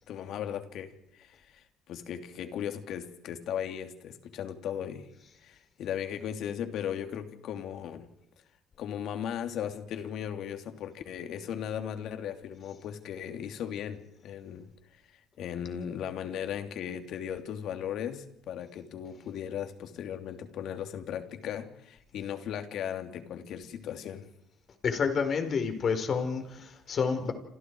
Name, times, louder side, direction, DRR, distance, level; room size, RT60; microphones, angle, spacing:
voice 1, 0.1-5.1 5.4-8.1 8.8-14.7 15.4-24.3, left 9 dB, 70° left, 7 dB, 3.1 m, -37 dB
voice 2, 24.8-27.3, left 5 dB, 45° left, 7 dB, 4.7 m, -29 dB
28.5 x 28.0 x 4.8 m, 0.79 s
cardioid pair, 110°, 0 cm